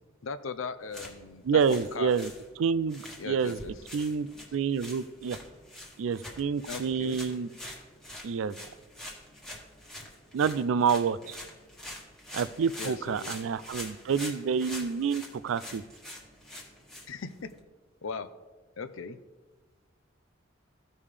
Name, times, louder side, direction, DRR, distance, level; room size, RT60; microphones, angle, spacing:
voice 1, 0.2-1.6 1.9-2.1 3.2-3.7 6.7-7.2 12.8-13.3 17.1-17.6 18.0-18.3 18.8-19.2, left 5 dB, 90° left, 11 dB, 0.6 m, -38 dB
sound 1, 0.8-17.6, left 1 dB, ahead, 1.3 m, -45 dB
voice 2, 1.4-2.3 2.6-3.6 3.9-5.4 6.0-7.5 8.2-8.6 10.3-11.4 12.3-15.8, right 6 dB, 80° right, 17 dB, 0.4 m, -28 dB
15.0 x 5.3 x 3.3 m, 1.3 s
head